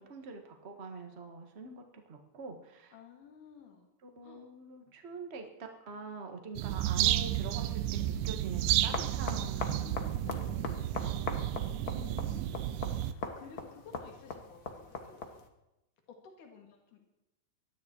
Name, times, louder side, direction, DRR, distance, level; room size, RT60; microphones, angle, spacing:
voice 1, 0.0-2.9 4.2-9.8 10.4-10.5 10.9-11.5 11.9-12.1, right 4 dB, 30° right, 4 dB, 1.1 m, -45 dB
voice 2, 2.9-3.9 4.2-4.4 9.6-10.7 11.9-15.2 16.1-17.0, left 5 dB, 70° left, 2 dB, 3.8 m, -53 dB
sound 1, 6.6-13.1, right 12 dB, 80° right, 2.1 m, -32 dB
sound 2, 8.1-15.5, left 4 dB, 55° left, 1.0 m, -42 dB
20.0 x 13.0 x 4.6 m, 0.92 s
omnidirectional pair, 3.8 m